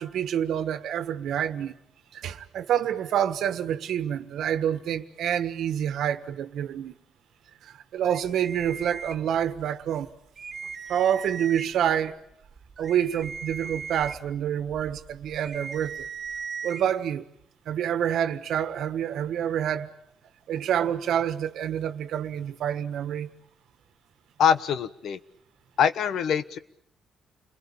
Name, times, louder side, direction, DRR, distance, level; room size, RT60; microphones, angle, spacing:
voice 1, 0.0-1.8 2.1-7.0 7.6-10.1 10.9-12.2 12.8-16.1 16.6-17.3 17.6-19.9 20.5-23.3, right 9 dB, 75° right, 1.4 m, -27 dB
sound 1, 8.0-9.6 10.0-10.1 10.4-11.9 12.4-16.8, right 5 dB, 40° right, 1.8 m, -38 dB
voice 2, 24.4-25.2 25.8-26.6, left 8 dB, 70° left, 1.2 m, -23 dB
30.0 x 21.5 x 8.7 m
cardioid pair, 90°, 0 cm